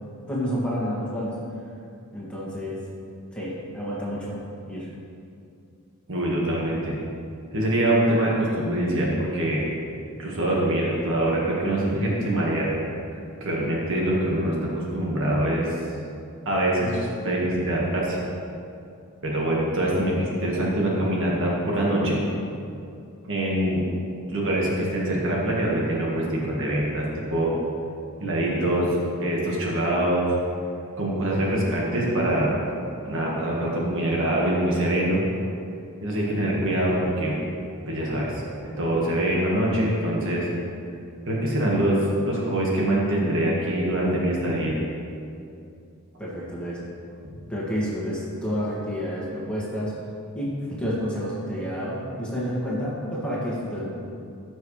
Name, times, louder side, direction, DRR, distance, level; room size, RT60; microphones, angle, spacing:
voice 1, 0.3-1.4 2.1-2.8 3.3-4.4 4.7-4.9 46.2-46.8 47.5-49.9 50.3-53.9, equal, 5° left, -8 dB, 2.2 m, -29 dB
voice 2, 6.1-6.9 7.5-9.6 10.2-12.7 13.4-15.8 16.5-18.2 19.2-22.2 23.3-23.8 24.3-27.5 28.2-28.9 29.2-30.3 31.0-32.8 33.0-35.2 36.0-37.4 37.9-38.3 38.8-40.5 41.3-44.7, right 1 dB, 60° right, -4 dB, 1.8 m, -24 dB
15.0 x 6.4 x 3.3 m, 2.5 s
head